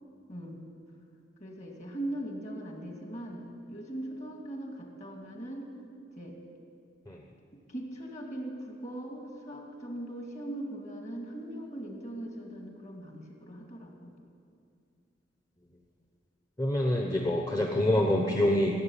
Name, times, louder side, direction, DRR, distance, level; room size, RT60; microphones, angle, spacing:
voice 1, 1.4-5.7 6.2-6.4 7.7-14.1, right 1 dB, 40° left, 1 dB, 2.3 m, -40 dB
voice 2, 16.6-18.7, left 1 dB, 20° left, 0 dB, 0.9 m, -26 dB
16.5 x 7.8 x 10.0 m, 2.3 s
head